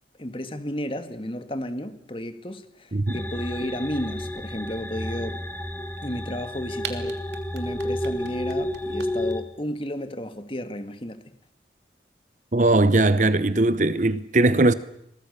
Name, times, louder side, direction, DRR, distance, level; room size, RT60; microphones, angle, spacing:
voice 1, 0.2-5.4 6.0-7.2 7.5-11.3, equal, 30° left, 1.9 m, -33 dB
sound 1, 3.1-9.4, left 1 dB, 10° left, 2.2 m, -31 dB
sound 2, 6.8-9.3, right 8 dB, 80° right, 2.9 m, -37 dB
voice 2, 12.5-14.7, right 2 dB, 45° right, 0.9 m, -19 dB
29.0 x 23.0 x 6.7 m
head